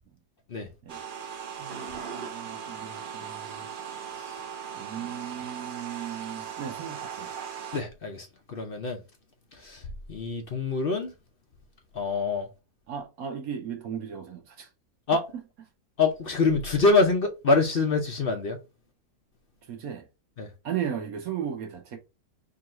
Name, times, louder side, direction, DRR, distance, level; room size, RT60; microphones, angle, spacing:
sound 1, 0.9-7.8, right 8 dB, 50° right, 0.6 m, -38 dB
voice 1, 1.6-3.7 4.8-7.3 12.9-14.7 19.7-20.1 20.6-22.0, right 8 dB, 70° right, 1.2 m, -36 dB
voice 2, 7.7-9.0 9.6-9.8 10.1-11.1 11.9-12.5 15.1-15.2 16.0-18.6 20.4-20.5, left 3 dB, 50° left, 0.7 m, -25 dB
3.9 x 2.5 x 4.2 m
omnidirectional pair, 1.6 m